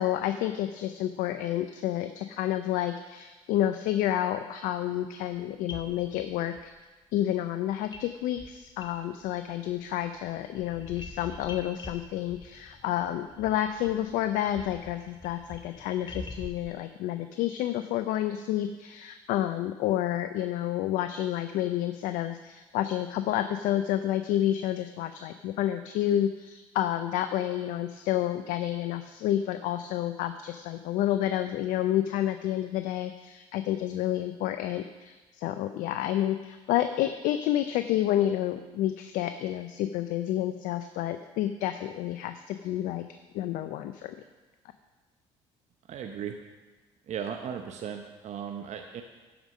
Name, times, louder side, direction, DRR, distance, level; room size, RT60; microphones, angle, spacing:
voice 1, 0.0-6.7 7.1-43.0 43.3-44.2, left 12 dB, 70° left, 10 dB, 0.5 m, -29 dB
sound 1, 5.7-6.6 7.9-8.1 8.3-9.4 9.7-16.7, left 2 dB, 30° left, 1.3 m, -45 dB
voice 2, 45.9-46.4 47.1-49.0, right 8 dB, 55° right, 5 dB, 0.9 m, -36 dB
11.0 x 5.0 x 6.3 m, 1.2 s
hypercardioid pair, 65°, 14 cm